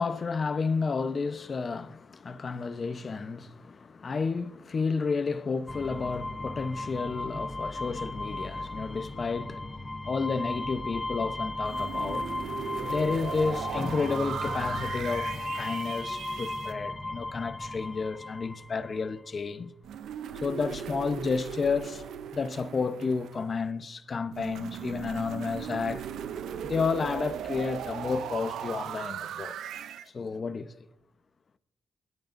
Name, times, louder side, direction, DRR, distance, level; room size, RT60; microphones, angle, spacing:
voice 1, 0.0-9.7 10.1-12.3 12.8-19.7 20.4-22.0 22.3-26.1 26.6-29.6 30.1-30.7, left 4 dB, 45° left, 0.8 m, -31 dB
sound 1, 5.7-19.1, left 2 dB, 15° left, 1.0 m, -36 dB
sound 2, 11.6-16.7 19.8-23.6 24.3-30.1, right 9 dB, 85° right, 0.5 m, -38 dB
22.5 x 11.0 x 2.6 m
cardioid pair, 90°, 0 cm